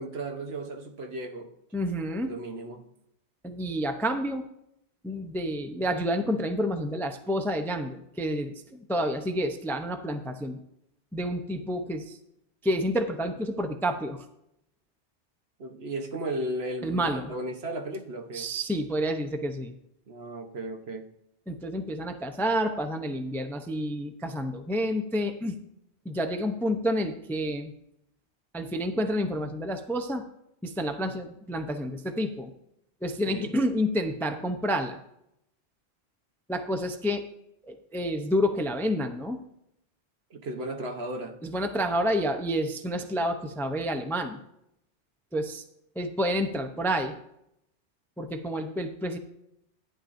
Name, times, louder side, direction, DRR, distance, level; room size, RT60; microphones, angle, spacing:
voice 1, 0.0-1.5 2.2-2.8 15.6-18.5 20.1-21.1 33.2-33.5 40.3-41.4, right 1 dB, 65° right, 4 dB, 1.3 m, -35 dB
voice 2, 1.7-2.4 3.4-4.5 5.0-10.6 11.1-12.2 12.6-14.2 16.8-17.3 18.3-19.7 21.5-25.6 26.0-27.7 28.5-30.2 30.6-32.5 33.0-35.0 36.5-37.2 37.6-39.4 41.4-44.4 45.3-45.6 46.0-47.1 48.2-49.2, equal, 5° left, 6 dB, 0.5 m, -29 dB
14.5 x 10.0 x 2.6 m, 0.79 s
omnidirectional pair, 1.1 m